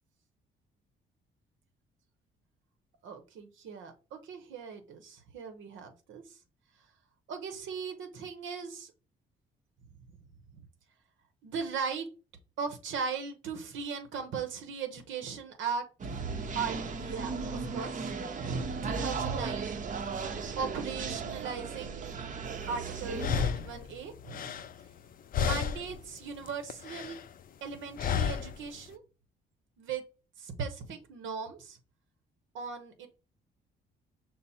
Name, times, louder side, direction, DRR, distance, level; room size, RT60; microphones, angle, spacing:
voice 1, 3.0-6.4 7.3-8.9 10.5-10.7 11.4-12.1 12.6-15.9 16.5-18.1 18.8-19.7 20.6-22.2 22.7-24.6 25.4-27.2 27.6-29.0 29.8-30.0 30.4-31.8 32.5-33.1, right 5 dB, 75° right, 6 dB, 0.7 m, -38 dB
sound 1, 16.0-23.4, right 4 dB, 40° right, 0.6 m, -36 dB
sound 2, 22.6-22.7 23.2-25.1 25.3-26.0 26.4-27.3 28.0-28.6, left 8 dB, 45° left, 0.4 m, -32 dB
5.4 x 2.0 x 4.1 m, 0.33 s
cardioid pair, 90°, 20 cm